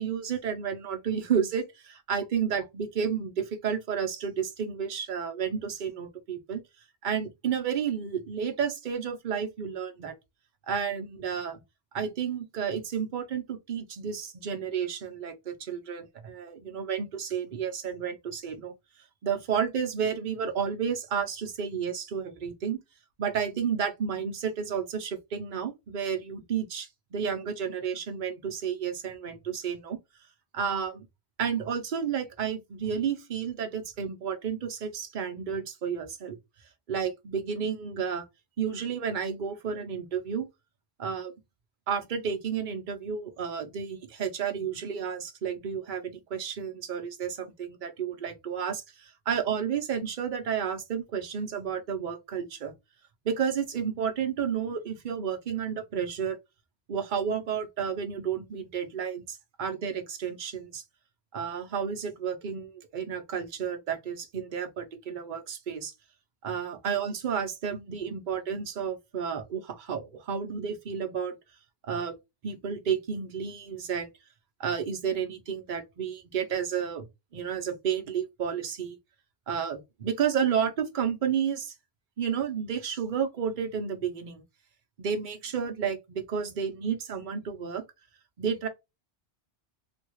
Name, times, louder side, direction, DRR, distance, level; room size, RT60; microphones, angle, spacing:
voice 1, 0.0-6.6 7.0-10.1 10.7-11.6 11.9-18.7 19.2-22.8 23.2-30.0 30.5-31.1 31.4-36.4 36.9-38.3 38.6-40.5 41.0-41.3 41.9-52.7 53.2-56.4 56.9-60.8 61.3-65.9 66.4-71.3 71.8-72.1 72.4-74.1 74.6-77.1 77.3-79.0 79.5-81.7 82.2-84.4 85.0-87.8 88.4-88.7, right 7 dB, 50° right, 0.9 m, -31 dB
3.5 x 2.3 x 3.0 m
omnidirectional pair, 1.1 m